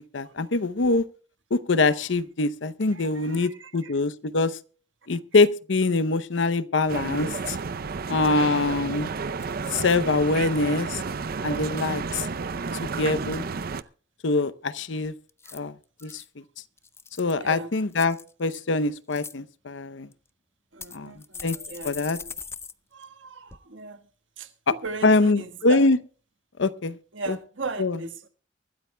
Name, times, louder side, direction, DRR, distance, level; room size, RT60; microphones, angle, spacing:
voice 1, 0.1-1.1 1.5-4.6 5.1-7.6 8.1-9.1 9.7-11.0 11.4-12.3 12.8-13.5 14.2-15.1 15.5-15.7 16.0-16.2 17.2-20.1 20.9-21.6 21.8-22.2 25.0-26.0 26.6-27.0 27.3-27.4 27.8-28.0, left 3 dB, 70° left, 0.7 m, -24 dB
voice 2, 2.9-4.0 15.4-15.6 16.0-16.2 17.4-17.7 20.7-22.3 22.9-24.0 24.4-25.9 27.1-28.3, right 3 dB, 75° right, 1.6 m, -38 dB
sound 1, 6.9-13.8, right 4 dB, 50° right, 0.6 m, -31 dB
sound 2, 8.6-9.0 9.4-10.0 10.4-10.8 15.3-16.3 16.8-17.4 17.9-18.6 19.0-19.3 20.1-20.2 20.8-22.7 23.0-23.1 23.5-23.6, left 5 dB, 15° left, 0.5 m, -41 dB
24.0 x 13.0 x 2.2 m
head